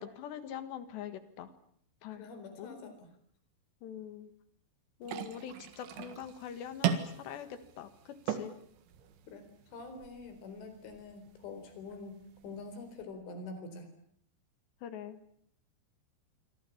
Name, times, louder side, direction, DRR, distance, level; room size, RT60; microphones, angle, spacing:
voice 1, 0.0-1.5 2.0-2.2 2.6-2.9 3.8-4.3 5.0-8.5 14.8-15.2, left 9 dB, 70° left, 11 dB, 3.7 m, -44 dB
voice 2, 2.1-3.1 9.3-12.2 12.4-13.9, left 3 dB, 85° left, 8 dB, 6.6 m, -46 dB
sound 1, 5.0-13.0, right 9 dB, 80° right, 4.1 m, -40 dB
27.0 x 24.0 x 7.2 m, 0.66 s
omnidirectional pair, 5.3 m